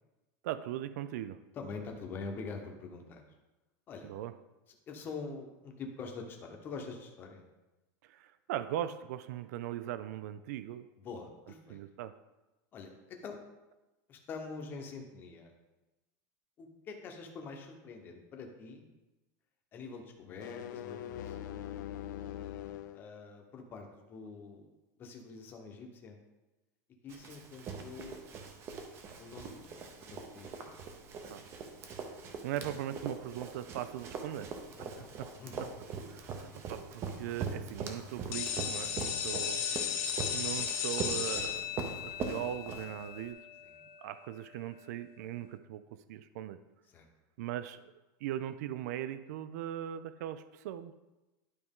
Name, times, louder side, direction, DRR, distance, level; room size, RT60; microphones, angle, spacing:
voice 1, 0.4-1.4 4.0-4.3 8.1-10.9 11.7-12.1 31.3-31.4 32.4-34.5 36.1-39.6 40.3-43.4 44.0-45.8 46.1-46.6 47.4-47.9 48.2-50.9, right 12 dB, 60° right, 13 dB, 0.4 m, -39 dB
voice 2, 1.5-3.2 3.9-4.1 4.9-7.5 11.0-11.8 12.7-13.4 14.1-15.5 16.6-18.9 19.7-21.7 22.9-24.7 25.0-26.2 27.0-28.2 29.2-29.7 30.1-30.7 34.8-35.7 36.2-36.4 39.2-39.3 43.6-43.8 46.9-47.1, left 4 dB, 20° left, 3 dB, 0.9 m, -45 dB
sound 1, 20.2-23.0, left 11 dB, 80° left, 0.5 m, -42 dB
Run, 27.1-43.3, right 5 dB, 25° right, 0.7 m, -42 dB
sound 2, 38.3-44.0, left 8 dB, 50° left, 0.9 m, -36 dB
11.0 x 4.6 x 3.6 m, 1.1 s
supercardioid pair, 175°, 10 cm